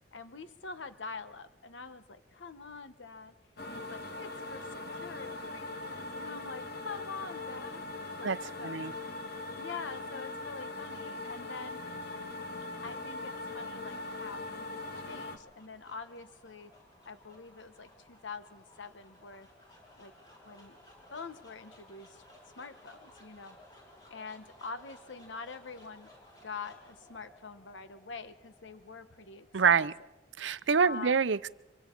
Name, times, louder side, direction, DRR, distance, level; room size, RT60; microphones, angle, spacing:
voice 1, 0.1-3.4 3.6-8.9 9.6-11.8 12.8-16.7 17.0-19.5 20.0-20.1 20.4-20.8 21.1-22.2 22.6-23.6 24.1-26.1 26.4-29.8 30.8-31.2, left 4 dB, 75° left, 10 dB, 1.1 m, -45 dB
sound 1, 3.6-15.4, left 2 dB, 55° left, 1.8 m, -41 dB
voice 2, 8.2-8.9 29.5-29.9 30.4-31.5, right 6 dB, 75° right, 16 dB, 0.7 m, -26 dB
sound 2, 12.9-30.7, left 1 dB, 20° left, 6.2 m, -59 dB
25.5 x 24.5 x 4.5 m, 0.95 s
head